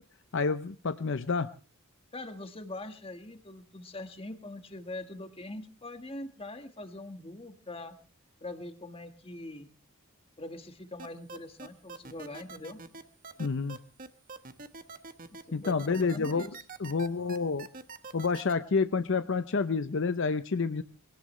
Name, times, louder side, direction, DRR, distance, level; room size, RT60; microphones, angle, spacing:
voice 1, 0.3-1.5 13.4-13.8 15.5-16.5 16.8-17.7 18.1-20.8, left 4 dB, 60° left, 11 dB, 0.7 m, -29 dB
voice 2, 2.1-8.0 8.4-9.7 10.4-12.8 15.3-16.6, left 2 dB, 25° left, 8 dB, 1.5 m, -43 dB
sound 1, 11.0-18.5, right 4 dB, 40° right, 1.2 m, -44 dB
23.0 x 17.5 x 3.2 m, 0.37 s
head